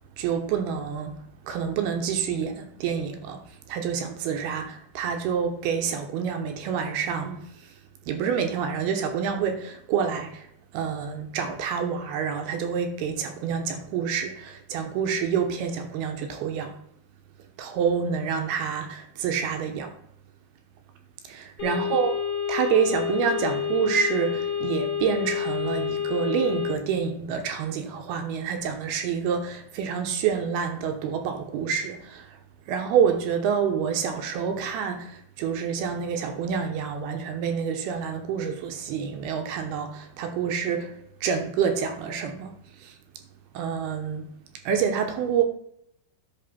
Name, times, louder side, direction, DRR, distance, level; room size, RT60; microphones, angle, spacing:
voice 1, 0.2-1.1 1.4-7.7 8.1-10.5 10.7-16.8 17.6-20.0 21.2-22.2 22.5-32.4 32.7-40.9 41.2-43.0 43.5-44.3 44.6-45.4, right 7 dB, 75° right, 2.6 m, -27 dB
sound 1, 21.6-26.7, left 8 dB, 45° left, 2.2 m, -28 dB
11.0 x 6.0 x 4.3 m
omnidirectional pair, 5.3 m